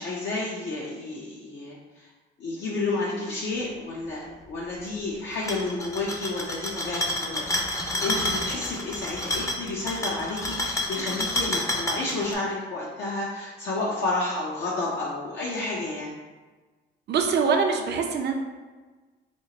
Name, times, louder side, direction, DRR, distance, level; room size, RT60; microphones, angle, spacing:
voice 1, 0.0-2.1 2.4-16.1, left 2 dB, 65° left, -4 dB, 0.6 m, -31 dB
sound 1, 5.3-12.3, left 1 dB, 15° left, 0.5 m, -29 dB
voice 2, 17.1-18.3, right 5 dB, 60° right, 3 dB, 0.6 m, -23 dB
4.3 x 2.4 x 2.9 m, 1.3 s
cardioid pair, 90°, 20 cm